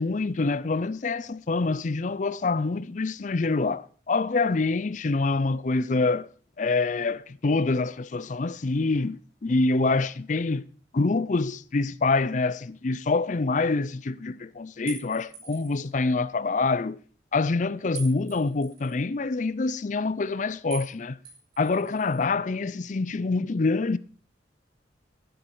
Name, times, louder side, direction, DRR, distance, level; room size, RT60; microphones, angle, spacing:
voice 1, 0.0-6.3 6.6-10.6 10.9-17.0 17.3-21.2 21.6-24.0, left 3 dB, 45° left, 0.5 m, -26 dB
sound 1, 14.9-15.8 17.9-18.9 20.7-20.9 21.2-22.2, right 6 dB, 55° right, 5.8 m, -43 dB
12.0 x 10.5 x 4.8 m
head